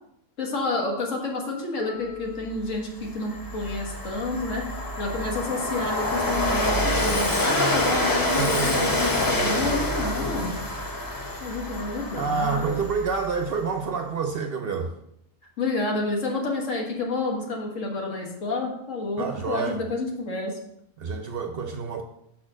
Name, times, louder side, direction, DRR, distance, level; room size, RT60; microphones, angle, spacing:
voice 1, 0.4-4.7 5.0-10.5 11.4-12.7 15.6-20.6, left 2 dB, 70° left, 0 dB, 1.8 m, -29 dB
Harp, 1.8-7.6 8.6-8.7, left 6 dB, 85° left, 1.7 m, -43 dB
Train, 2.5-2.6 3.0-13.4, left 1 dB, 20° left, 0.7 m, -27 dB
voice 2, 8.4-8.9 9.3-9.7 12.2-14.9 19.2-19.8 21.0-22.0, right 5 dB, 60° right, 6 dB, 0.7 m, -28 dB
5.8 x 4.3 x 6.1 m, 0.78 s
omnidirectional pair, 1.4 m